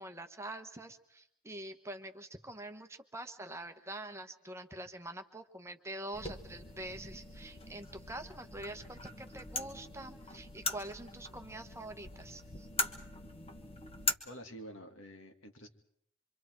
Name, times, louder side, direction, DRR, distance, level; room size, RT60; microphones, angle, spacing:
voice 1, 0.0-12.7, right 1 dB, 15° right, 6 dB, 1.1 m, -45 dB
sound 1, 6.1-14.1, left 3 dB, 30° left, 1.3 m, -41 dB
voice 2, 14.2-15.7, equal, 75° left, 5 dB, 2.2 m, -48 dB
26.0 x 25.5 x 4.6 m, 0.71 s
head